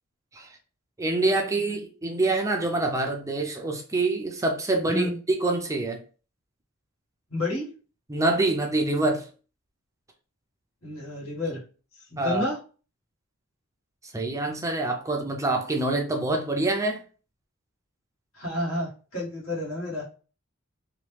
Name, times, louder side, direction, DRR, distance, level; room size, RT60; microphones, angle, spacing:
voice 1, 1.0-5.1 5.4-6.0 8.1-9.3 12.2-12.5 14.0-17.0, right 2 dB, 15° right, 0.4 m, -26 dB
voice 2, 7.3-7.7 10.8-11.6 12.1-12.6 18.3-20.2, left 1 dB, 75° left, 1.6 m, -30 dB
3.0 x 2.3 x 3.2 m
head